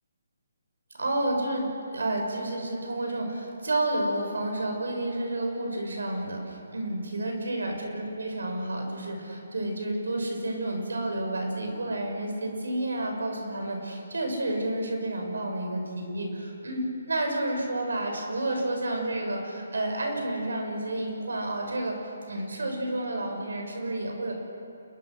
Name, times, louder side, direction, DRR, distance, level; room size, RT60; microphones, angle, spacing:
voice 1, 1.0-24.3, right 1 dB, 75° right, 2 dB, 6.9 m, -30 dB
29.0 x 22.0 x 6.5 m, 2.5 s
figure-of-eight pair, 150°, 0 cm